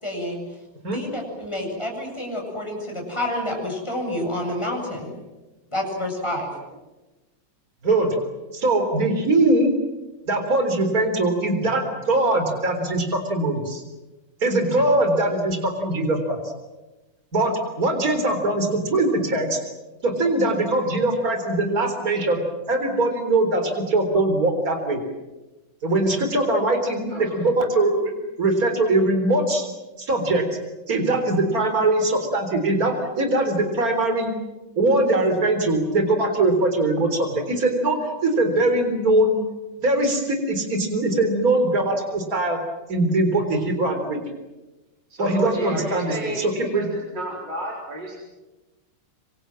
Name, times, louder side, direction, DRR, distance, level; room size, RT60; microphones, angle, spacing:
voice 1, 0.0-0.4 0.9-5.1 5.7-6.5, left 1 dB, 15° left, 0 dB, 7.8 m, -28 dB
voice 2, 7.8-8.2 8.5-9.7 10.3-13.8 14.4-16.4 17.3-19.6 20.0-22.4 22.7-25.0 25.8-28.1 28.4-29.7 30.0-30.4 30.9-34.3 34.8-39.4 39.8-42.6 42.9-44.2 45.2-46.9, right 2 dB, 45° right, 5 dB, 4.3 m, -21 dB
voice 3, 45.1-48.2, equal, 60° right, -2 dB, 4.9 m, -31 dB
26.5 x 26.5 x 7.6 m, 1.1 s
omnidirectional pair, 2.1 m